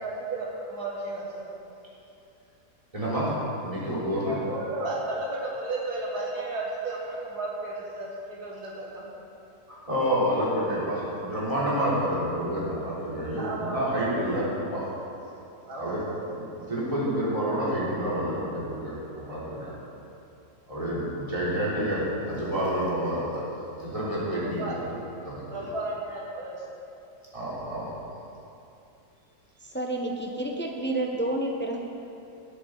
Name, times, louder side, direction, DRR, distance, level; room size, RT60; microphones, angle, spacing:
voice 1, 0.0-1.5 4.1-9.1 13.4-14.1 15.7-16.2 24.4-24.8 25.5-26.6, right 2 dB, 75° right, -3 dB, 2.1 m, -34 dB
voice 2, 2.9-4.4 9.7-14.9 15.8-16.0 16.4-19.7 20.7-23.4 23.8-24.6 25.2-25.6 27.3-27.9, equal, 20° right, -9 dB, 3.4 m, -29 dB
voice 3, 29.6-31.8, right 1 dB, 10° left, 1 dB, 0.5 m, -29 dB
17.0 x 8.5 x 3.9 m, 2.7 s
omnidirectional pair, 1.7 m